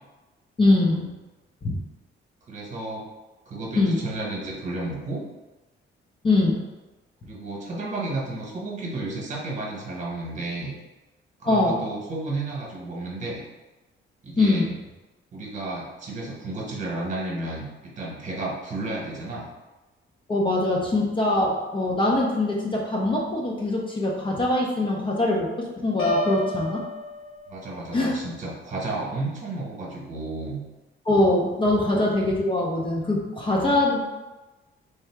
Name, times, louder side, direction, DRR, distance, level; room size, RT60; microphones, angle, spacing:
voice 1, 0.6-1.1 1.6-1.8 3.7-4.0 6.2-6.6 11.4-11.8 14.4-14.7 20.3-26.8 27.9-28.2 31.1-34.0, left 2 dB, 25° left, -2 dB, 0.5 m, -22 dB
voice 2, 2.5-3.0 3.5-5.2 7.2-10.7 11.4-13.4 14.2-14.7 15.3-19.5 27.5-30.6, right 2 dB, 35° right, -3 dB, 1.0 m, -32 dB
Piano, 26.0-27.9, left 2 dB, 80° left, 0.8 m, -30 dB
3.4 x 2.7 x 4.5 m, 1.1 s
cardioid pair, 155°, 21 cm